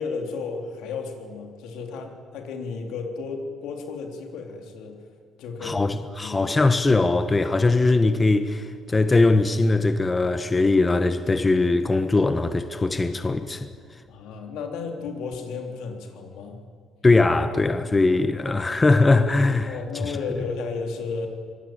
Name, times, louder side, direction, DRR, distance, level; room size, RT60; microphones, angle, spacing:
voice 1, 0.0-5.0 5.4-5.9 6.2-6.5 14.1-16.6 19.7-21.3, left 4 dB, 85° left, 3.5 m, -33 dB
voice 2, 5.6-13.7 17.0-19.8, left 3 dB, 20° left, 1.1 m, -20 dB
24.5 x 19.5 x 9.0 m
cardioid pair, 115°, 0 cm